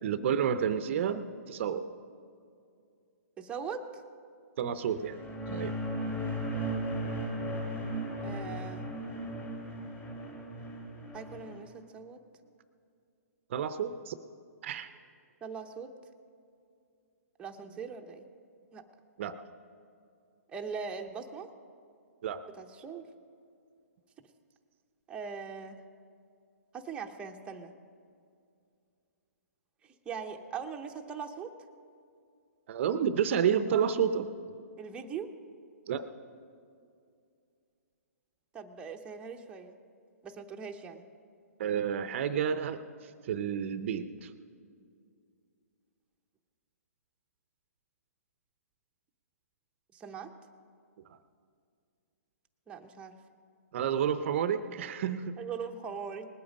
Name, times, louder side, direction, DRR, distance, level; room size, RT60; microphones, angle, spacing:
voice 1, 0.0-1.9 4.6-5.2 5.5-5.7 13.5-14.1 14.6-14.9 19.2-19.4 22.2-22.4 32.7-34.6 35.9-36.1 41.6-42.8 43.3-44.3 53.7-55.4, right 8 dB, 50° right, 12 dB, 0.6 m, -30 dB
voice 2, 3.4-3.8 8.2-8.9 11.1-12.2 15.4-15.9 17.4-18.2 18.7-18.8 20.5-21.5 22.5-23.1 25.1-25.8 26.7-27.7 29.8-31.5 34.8-35.3 38.5-39.8 40.2-41.0 49.9-50.3 52.7-53.1 55.4-56.3, right 6 dB, 10° right, 2 dB, 0.7 m, -41 dB
sound 1, 4.9-11.6, right 1 dB, 20° left, 2.7 m, -36 dB
19.5 x 8.5 x 5.2 m, 2.4 s
hypercardioid pair, 140°, 9 cm